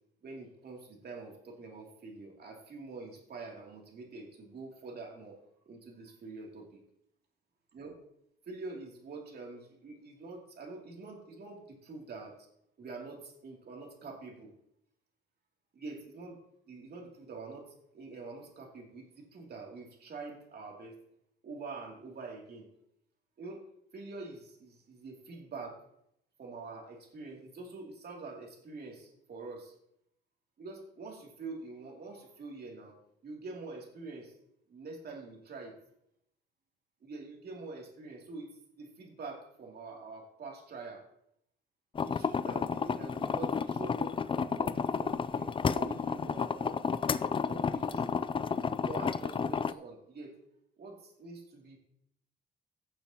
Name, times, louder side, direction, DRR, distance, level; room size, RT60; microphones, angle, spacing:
voice 1, 0.2-5.4 5.7-6.7 7.7-8.0 8.5-12.4 12.8-14.5 15.7-21.0 21.4-22.7 23.4-23.6 23.9-25.8 26.4-29.7 30.6-33.0 33.2-34.4 34.7-35.8 37.0-41.1 42.0-46.8 47.5-48.2 48.8-50.4 50.8-51.8, right 3 dB, 55° right, 0 dB, 2.8 m, -45 dB
sound 1, 41.9-49.7, left 6 dB, 25° left, 0.4 m, -31 dB
16.0 x 6.9 x 2.9 m, 0.75 s
cardioid pair, 90°, 20 cm